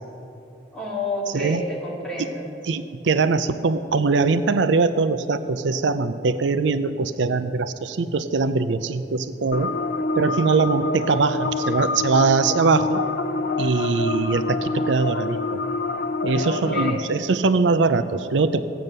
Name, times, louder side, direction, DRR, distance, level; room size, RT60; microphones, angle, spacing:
voice 1, 0.7-2.5 16.3-17.0, left 1 dB, 5° left, -6 dB, 3.3 m, -30 dB
voice 2, 2.6-9.7 10.1-13.0 13.6-15.6 16.2-18.7, right 4 dB, 85° right, 12 dB, 0.5 m, -22 dB
sound 1, 9.5-16.9, left 3 dB, 60° left, 0.7 m, -27 dB
15.5 x 9.1 x 6.7 m, 2.7 s
head